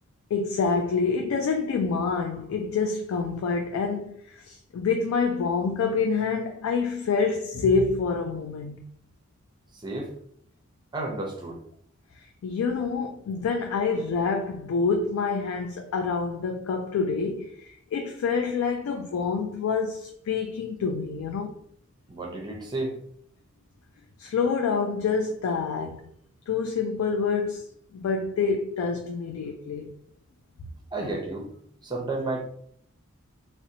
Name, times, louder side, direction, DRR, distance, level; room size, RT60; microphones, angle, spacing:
voice 1, 0.3-8.8 12.2-21.5 24.2-26.1 26.5-29.9 31.0-31.1, left 5 dB, 90° left, 0.3 m, -27 dB
voice 2, 9.7-10.1 10.9-11.6 22.1-23.0 30.9-31.5 31.8-32.4, right 2 dB, 20° right, 0.5 m, -32 dB
2.6 x 2.1 x 2.7 m
head